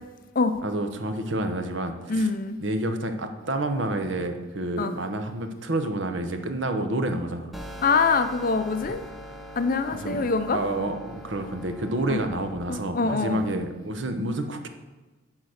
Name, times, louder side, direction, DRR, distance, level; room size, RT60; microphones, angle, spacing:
voice 1, 0.6-2.3 2.6-7.5 9.9-14.7, right 1 dB, 60° right, 7 dB, 0.8 m, -29 dB
voice 2, 2.1-2.5 4.8-4.9 7.8-9.0 9.6-10.6 12.1-12.2 12.7-13.4, left 4 dB, 40° left, 9 dB, 0.5 m, -24 dB
sound 1, 7.5-12.5, equal, ahead, 0.6 m, -42 dB
10.5 x 4.0 x 6.5 m, 1.2 s
head